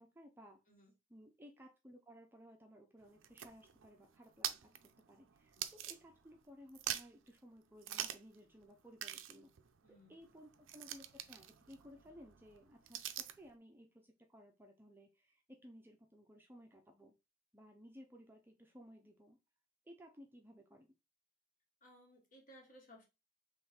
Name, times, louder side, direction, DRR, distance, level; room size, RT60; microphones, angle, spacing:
voice 1, 0.0-0.6 1.1-4.7 5.1-9.5 9.9-17.1 17.5-19.4 19.8-20.9, equal, 10° right, 2 dB, 0.6 m, -58 dB
sound 1, 3.0-6.4 6.7-7.3 7.8-8.4 8.6-8.7 9.0-13.5, right 11 dB, 85° right, 0.5 m, -45 dB
voice 2, 9.8-10.3 21.8-23.0, equal, 45° left, 1 dB, 1.5 m, -61 dB
3.6 x 3.2 x 4.3 m, 0.26 s
head